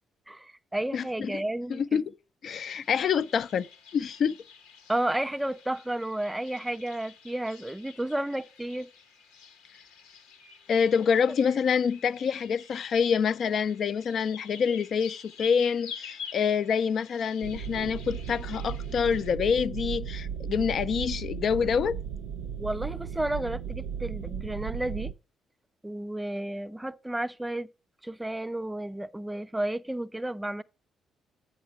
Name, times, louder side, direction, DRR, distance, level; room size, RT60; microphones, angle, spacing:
voice 1, 0.3-2.0 4.9-8.9 22.6-25.1 25.8-27.7 28.0-30.6, right 1 dB, 10° right, 0.5 m, -32 dB
voice 2, 0.9-1.4 1.7-2.0 2.4-3.7 3.9-4.3 10.7-22.0, left 6 dB, 60° left, 0.4 m, -26 dB
sound 1, 2.6-19.3, left 7 dB, 80° left, 1.1 m, -48 dB
sound 2, 17.4-25.1, right 7 dB, 80° right, 0.4 m, -36 dB
8.5 x 5.8 x 4.6 m
hypercardioid pair, 50°, 0 cm